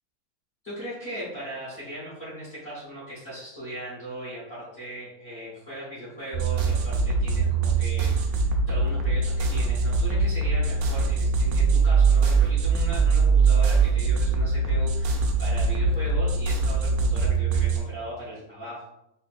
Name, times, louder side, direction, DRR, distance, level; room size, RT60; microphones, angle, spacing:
voice 1, 0.6-18.8, right 1 dB, 40° left, -9 dB, 0.9 m, -38 dB
sound 1, 6.3-17.8, right 4 dB, 85° right, 2.0 m, -22 dB
5.4 x 2.2 x 2.5 m, 0.83 s
omnidirectional pair, 3.3 m